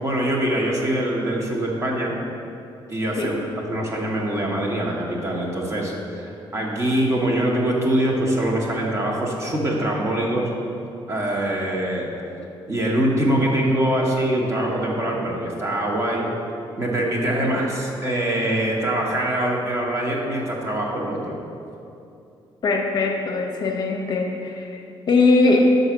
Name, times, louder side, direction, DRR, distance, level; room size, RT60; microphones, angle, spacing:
voice 1, 0.0-2.2 2.9-3.4 3.7-10.5 11.1-12.1 12.7-16.3 16.8-21.3, right 1 dB, 30° right, -1 dB, 1.0 m, -23 dB
voice 2, 22.6-25.8, left 3 dB, 50° left, 2 dB, 0.7 m, -20 dB
5.5 x 4.0 x 6.0 m, 2.7 s
cardioid pair, 130°, 9 cm